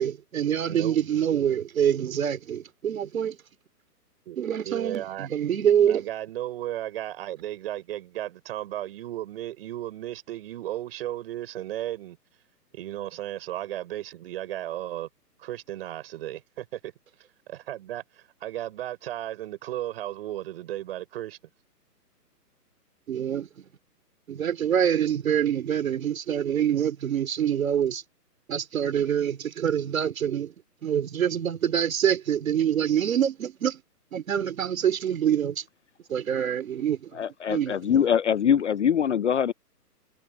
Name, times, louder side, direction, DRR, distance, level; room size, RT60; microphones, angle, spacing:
voice 1, 0.0-3.4 4.4-6.0 23.1-23.5 24.3-28.0 28.5-30.5 30.8-33.8 34.1-35.6 36.1-37.1 37.5-38.0, right 9 dB, 55° right, 3.0 m, -25 dB
voice 2, 0.7-1.0 4.2-4.4 4.6-5.3 5.9-12.2 12.7-15.1 15.4-16.9 17.5-21.4, right 13 dB, 35° right, 6.7 m, -35 dB
voice 3, 37.1-39.5, left 8 dB, 45° left, 0.6 m, -23 dB
hypercardioid pair, 160°, 48 cm